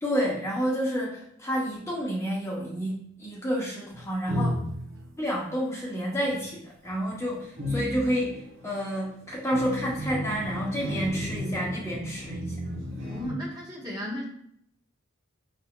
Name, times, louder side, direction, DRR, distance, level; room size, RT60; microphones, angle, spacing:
voice 1, 0.0-4.5 5.2-12.5, equal, 15° left, -5 dB, 0.8 m, -29 dB
sound 1, 3.9-5.1 6.1-6.5 6.9-13.3, left 1 dB, 80° right, 1.1 m, -33 dB
voice 2, 13.1-14.2, equal, 20° right, -4 dB, 1.2 m, -35 dB
5.6 x 3.7 x 2.3 m, 0.68 s
head